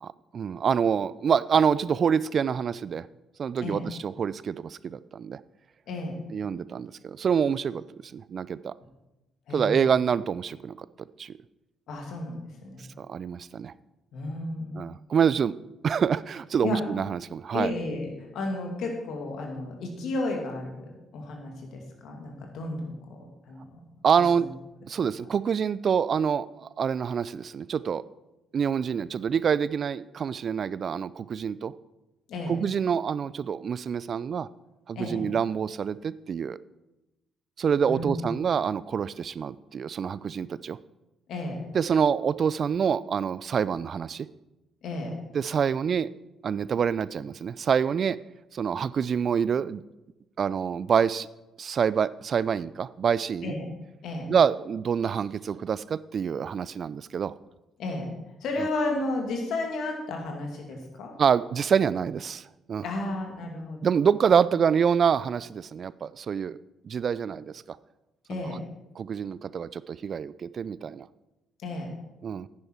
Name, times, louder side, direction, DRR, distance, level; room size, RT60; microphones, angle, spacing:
voice 1, 0.0-3.1 3.4-5.4 6.3-7.8 8.1-8.7 9.5-10.8 11.2-11.3 13.0-13.7 14.7-15.5 15.8-17.7 24.0-24.5 24.9-28.0 28.5-31.7 32.5-34.5 34.9-36.6 37.6-40.8 41.7-44.3 45.3-46.1 46.4-48.2 48.5-49.8 50.4-51.3 51.6-53.5 54.3-57.3 58.6-58.7 61.2-62.4 62.7-62.8 63.8-66.6 66.8-67.8 68.3-68.4 69.0-71.1 72.2-72.5, right 7 dB, 55° right, 18 dB, 0.3 m, -26 dB
voice 2, 5.9-6.2 9.5-9.9 11.9-12.9 14.1-14.8 16.6-16.8 17.5-23.8 24.3-24.5 25.0-25.1 32.3-32.6 34.9-35.3 37.8-38.4 41.3-41.7 44.8-45.2 53.4-53.6 54.0-54.3 57.8-58.1 58.4-61.1 62.8-63.8 68.3-68.6 71.6-71.9, left 2 dB, 65° left, 2 dB, 2.3 m, -33 dB
10.0 x 9.6 x 4.5 m, 0.98 s
hypercardioid pair, 50°, 0 cm